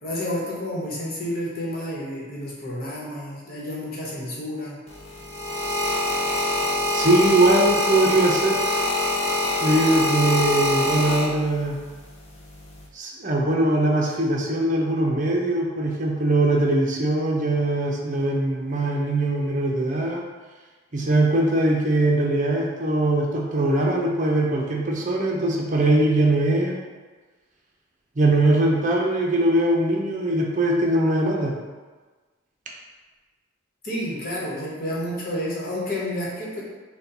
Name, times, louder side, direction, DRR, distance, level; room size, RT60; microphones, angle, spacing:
voice 1, 0.0-4.8 33.8-36.6, left 1 dB, 50° left, -6 dB, 1.1 m, -30 dB
sound 1, 4.9-11.7 12.5-12.9, left 1 dB, 35° left, 0.6 m, -24 dB
voice 2, 6.9-8.6 9.6-11.8 12.9-20.2 20.9-26.8 28.2-31.5, right 1 dB, 40° right, -1 dB, 0.6 m, -21 dB
4.3 x 2.3 x 3.9 m, 1.3 s
head